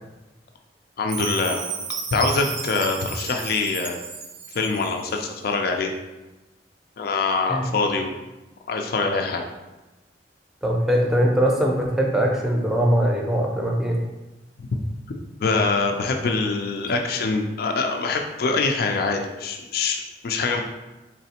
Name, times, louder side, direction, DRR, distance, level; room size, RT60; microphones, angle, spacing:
voice 1, 1.0-1.7 2.1-4.0 4.5-5.9 7.0-8.1 8.7-9.4 15.4-20.6, left 3 dB, 60° left, 3 dB, 0.4 m, -24 dB
Chime, 1.1-5.2, right 6 dB, 75° right, 0.5 m, -33 dB
voice 2, 10.6-14.0, equal, ahead, -1 dB, 0.5 m, -21 dB
4.1 x 3.0 x 2.8 m, 1.1 s
head